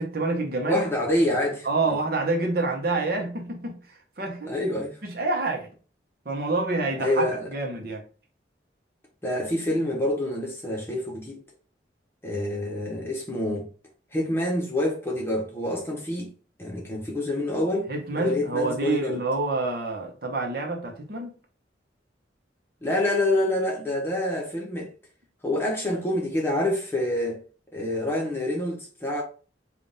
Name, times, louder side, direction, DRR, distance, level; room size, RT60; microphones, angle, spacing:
voice 1, 0.0-0.8 1.6-4.6 5.0-5.7 6.2-8.0 17.9-21.3, right 3 dB, 55° right, 0.8 m, -27 dB
voice 2, 0.7-1.7 4.5-5.0 7.0-7.5 9.2-11.4 12.2-13.7 14.1-16.3 16.6-19.2 22.8-24.9 25.4-27.4 27.7-29.2, left 1 dB, 15° left, 0.9 m, -27 dB
3.6 x 2.4 x 3.8 m
head